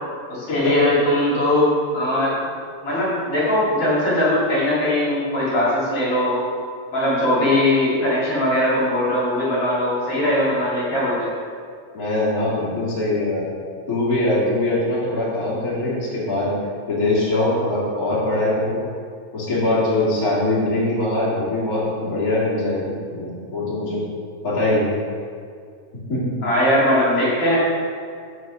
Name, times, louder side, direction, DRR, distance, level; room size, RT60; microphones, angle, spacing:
voice 1, 0.3-2.4 2.8-6.4 6.9-11.3 26.4-27.6, left 1 dB, 45° left, -7 dB, 3.4 m, -20 dB
voice 2, 11.9-13.4 13.9-16.5 16.9-18.8 19.3-24.0 24.4-24.9 26.1-26.2, left 2 dB, 30° left, -9 dB, 2.4 m, -22 dB
8.1 x 6.3 x 6.1 m, 2.1 s
omnidirectional pair, 4.0 m